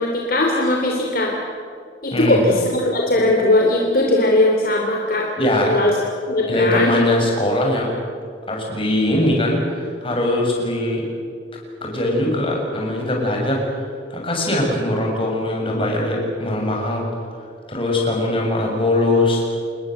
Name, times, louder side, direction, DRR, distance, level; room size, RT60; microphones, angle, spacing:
voice 1, 0.0-1.3 2.0-6.0 6.3-6.9, left 1 dB, 50° left, 0 dB, 3.3 m, -19 dB
voice 2, 5.4-5.8 6.5-7.9 8.5-11.0 11.8-13.6 14.1-17.0 17.7-19.4, left 1 dB, 30° left, -1 dB, 7.2 m, -21 dB
28.5 x 21.5 x 8.0 m, 2.3 s
head